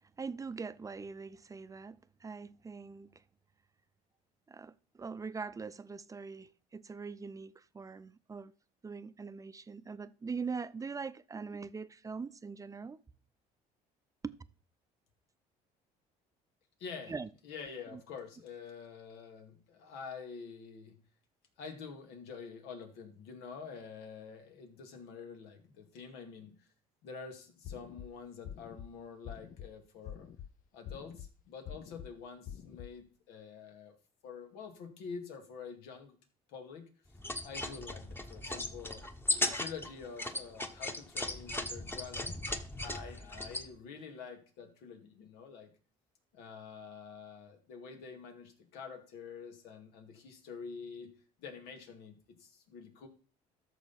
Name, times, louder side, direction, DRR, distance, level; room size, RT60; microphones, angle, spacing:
voice 1, 0.2-3.2 4.5-8.5 8.8-13.0 14.2-14.3 17.1-17.3 17.9-18.0, right 5 dB, 20° right, 0.6 m, -42 dB
voice 2, 16.8-17.1 17.4-21.0 21.6-26.7 27.0-30.3 30.7-34.0 34.2-36.2 36.5-36.9 37.4-39.0 39.4-42.4 42.8-45.7 46.3-51.1 51.4-53.1, left 5 dB, 85° left, 2.2 m, -47 dB
sound 1, 27.6-28.1 28.5-28.9 29.3-29.7 30.1-30.5 30.9-31.3 31.7-32.1 32.5-32.9, left 10 dB, 55° left, 0.8 m, -45 dB
sound 2, 37.1-43.7, left 1 dB, 15° left, 1.2 m, -37 dB
13.5 x 6.4 x 4.2 m
supercardioid pair, 95°, 16 cm